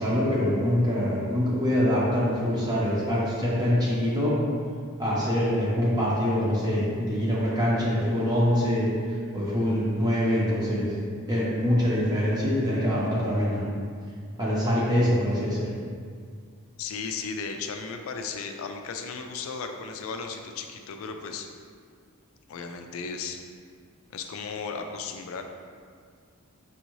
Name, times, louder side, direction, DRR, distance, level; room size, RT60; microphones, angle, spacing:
voice 1, 0.0-4.3 5.0-8.9 9.3-10.9 11.3-13.6 14.4-15.6, equal, 20° right, -7 dB, 0.7 m, -24 dB
voice 2, 16.8-21.5 22.5-23.4 24.1-25.4, left 5 dB, 70° left, 5 dB, 0.4 m, -35 dB
5.4 x 2.7 x 3.0 m, 2.1 s
head